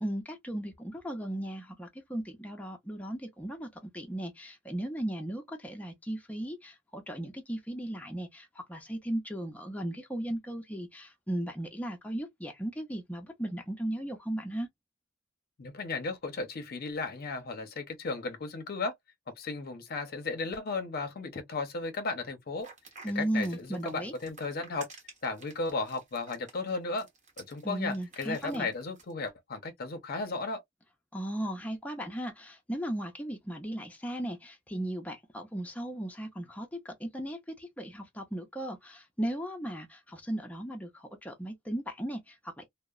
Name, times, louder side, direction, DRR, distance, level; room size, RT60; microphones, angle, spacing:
voice 1, 0.0-14.7 23.0-24.1 27.6-28.7 31.1-42.7, right 1 dB, 10° left, 0.5 m, -36 dB
voice 2, 15.6-18.9 19.3-22.7 23.2-24.9 25.2-27.1 27.4-30.6, left 3 dB, 55° left, 0.6 m, -35 dB
sound 1, 22.6-29.1, right 4 dB, 40° right, 1.1 m, -52 dB
2.8 x 2.0 x 2.2 m
head